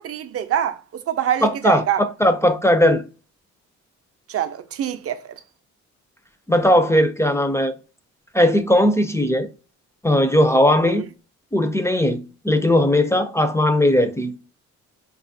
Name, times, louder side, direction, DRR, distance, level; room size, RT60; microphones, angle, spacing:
voice 1, 0.0-2.0 4.3-5.2 10.8-11.0, right 10 dB, 50° right, 0.5 m, -25 dB
voice 2, 1.4-3.0 6.5-7.7 8.3-9.5 10.0-11.0 11.5-14.3, left 1 dB, 10° left, 0.3 m, -18 dB
4.0 x 2.3 x 2.6 m
cardioid pair, 90°, 30 cm